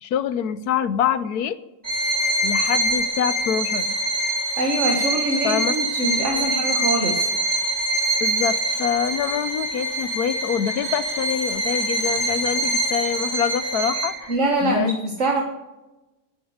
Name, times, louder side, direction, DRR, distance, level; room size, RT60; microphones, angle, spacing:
voice 1, 0.0-1.6 2.4-3.9 5.4-5.7 6.4-6.5 8.2-14.3 14.6-14.9, left 8 dB, 80° left, 14 dB, 1.3 m, -25 dB
Bowed string instrument, 1.8-14.3, right 1 dB, 20° right, 4.6 m, -24 dB
voice 2, 4.6-7.3 14.3-15.4, right 1 dB, 55° right, 1 dB, 1.9 m, -23 dB
19.0 x 7.5 x 6.5 m, 1.0 s
omnidirectional pair, 1.6 m